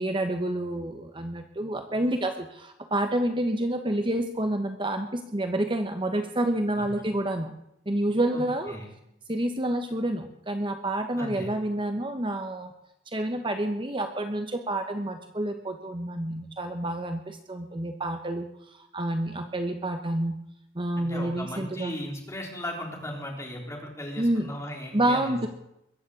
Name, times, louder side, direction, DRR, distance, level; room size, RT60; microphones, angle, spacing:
voice 1, 0.0-7.5 7.9-8.7 9.3-12.7 13.1-20.4 20.7-22.0 24.2-24.5 24.9-25.5, right 1 dB, 30° right, 6 dB, 1.1 m, -28 dB
voice 2, 11.2-11.5 21.0-25.4, left 1 dB, 15° left, 0 dB, 3.9 m, -37 dB
22.0 x 7.4 x 8.4 m, 0.82 s
head